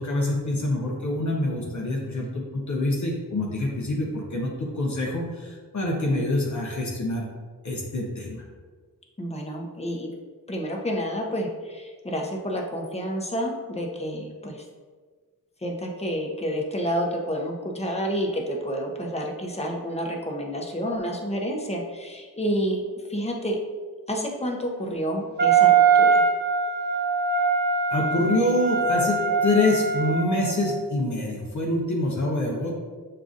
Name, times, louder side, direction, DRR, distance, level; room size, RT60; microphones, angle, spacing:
voice 1, 0.0-7.3 7.6-8.4 27.9-32.7, left 1 dB, 50° left, -2 dB, 0.8 m, -26 dB
voice 2, 9.2-10.1 10.5-14.6 15.6-22.8 23.1-23.6 24.1-26.1, equal, 15° left, 0 dB, 0.8 m, -29 dB
Wind instrument woodwind instrument, 25.4-30.6, right 5 dB, 30° right, 0.6 m, -22 dB
6.6 x 2.4 x 2.5 m, 1.5 s
cardioid pair, 60°, 36 cm